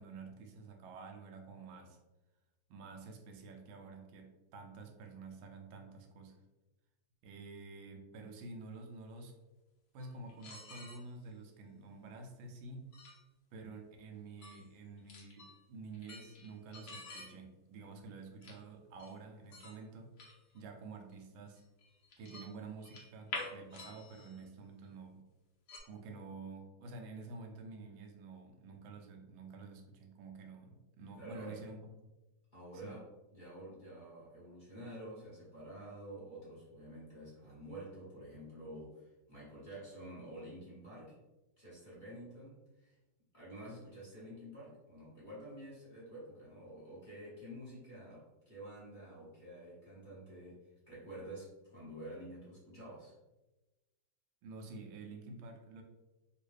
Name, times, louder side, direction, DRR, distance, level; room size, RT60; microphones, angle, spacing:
voice 1, 0.0-2.0 2.7-6.4 7.2-9.4 9.9-12.9 13.5-20.1 20.5-21.6 22.2-25.2 25.8-31.8 32.7-33.0 54.4-55.8, right 3 dB, 90° right, 3 dB, 1.4 m, -49 dB
sound 1, 10.0-11.0 12.9-13.2 14.4-14.6 15.0-15.6 15.9-17.3 18.4-18.6 19.0-19.1 19.5-19.7 20.2-20.6 21.1-21.2 21.6-22.5 22.8-24.4 24.8-24.9 25.7-25.8, left 3 dB, 60° left, 1.2 m, -48 dB
voice 2, 31.2-31.6 32.5-41.2 41.6-42.9 43.3-53.1, right 1 dB, 30° left, -9 dB, 1.1 m, -49 dB
3.6 x 2.4 x 3.1 m, 1.1 s
omnidirectional pair, 2.1 m